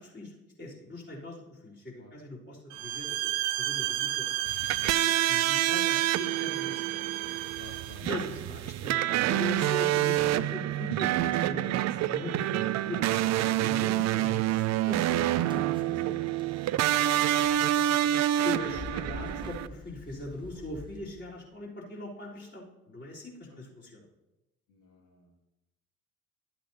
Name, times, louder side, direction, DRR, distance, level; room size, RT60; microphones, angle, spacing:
voice 1, 0.0-7.0 8.0-15.6 15.9-16.2 18.4-24.1, left 2 dB, 25° left, -6 dB, 3.7 m, -41 dB
sound 1, 2.7-8.0, right 13 dB, 75° right, 0.7 m, -32 dB
sound 2, 4.5-19.7, right 13 dB, 40° right, 0.5 m, -27 dB
voice 2, 7.6-8.2 16.8-18.0 19.1-19.2 23.5-23.6 24.7-25.3, left 2 dB, 80° left, -4 dB, 2.2 m, -53 dB
sound 3, 15.0-21.4, left 2 dB, 10° right, 1.0 m, -46 dB
13.0 x 8.5 x 2.8 m, 1.0 s
hypercardioid pair, 55°, 42 cm